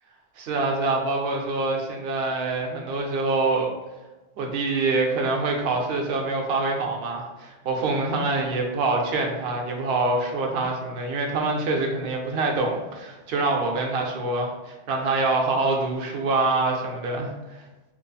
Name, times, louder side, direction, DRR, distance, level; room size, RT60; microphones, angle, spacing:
voice 1, 0.4-3.7 4.4-17.6, right 3 dB, 80° right, 1 dB, 0.8 m, -25 dB
3.0 x 2.3 x 3.9 m, 1.1 s
omnidirectional pair, 1.0 m